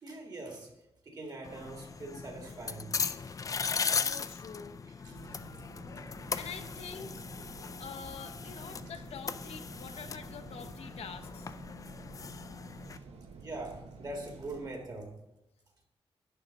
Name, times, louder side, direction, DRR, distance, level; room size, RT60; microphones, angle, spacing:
voice 1, 0.0-0.7 1.0-3.4 5.0-5.4 6.9-7.1 13.4-15.2, right 2 dB, 40° right, 1 dB, 1.9 m, -43 dB
sound 1, 1.4-13.0, left 5 dB, 35° left, 0.3 m, -38 dB
voice 2, 3.9-4.8 6.4-7.2 7.8-11.5, left 6 dB, 80° left, 5 dB, 0.7 m, -46 dB
sound 2, 5.1-14.7, right 3 dB, 85° right, 1.0 m, -50 dB
11.0 x 4.0 x 6.3 m, 0.94 s
wide cardioid pair, 165°, 10 cm